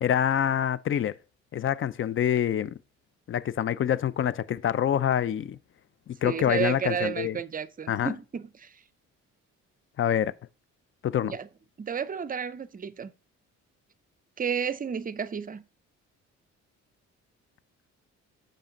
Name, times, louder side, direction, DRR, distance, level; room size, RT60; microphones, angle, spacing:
voice 1, 0.0-1.1 1.5-2.8 3.3-5.6 6.1-7.4 7.9-8.1 10.0-10.3 11.0-11.4, left 10 dB, 45° left, 0.5 m, -26 dB
voice 2, 6.2-8.7 11.2-11.5 11.8-13.1 14.4-15.6, right 7 dB, 30° right, 0.5 m, -32 dB
7.1 x 5.2 x 3.8 m
cardioid pair, 90°, 30 cm